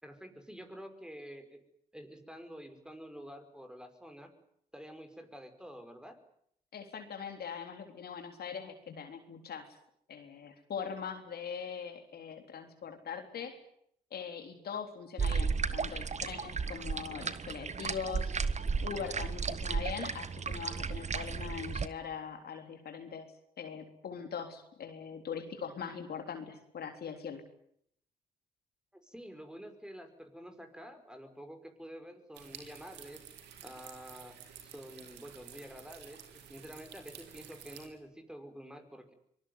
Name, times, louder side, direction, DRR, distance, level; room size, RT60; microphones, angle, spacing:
voice 1, 0.0-1.6 1.9-4.3 4.7-6.2 28.9-33.3 33.6-39.1, equal, 5° right, 7 dB, 5.4 m, -49 dB
voice 2, 6.7-9.7 10.1-13.6 14.1-18.3 18.8-23.3 23.6-27.4, left 6 dB, 65° left, 5 dB, 3.6 m, -41 dB
sound 1, 15.2-21.9, right 5 dB, 40° right, 1.6 m, -34 dB
sound 2, 32.3-37.9, right 8 dB, 80° right, 3.5 m, -52 dB
24.5 x 20.0 x 9.5 m, 0.70 s
hypercardioid pair, 50°, 18 cm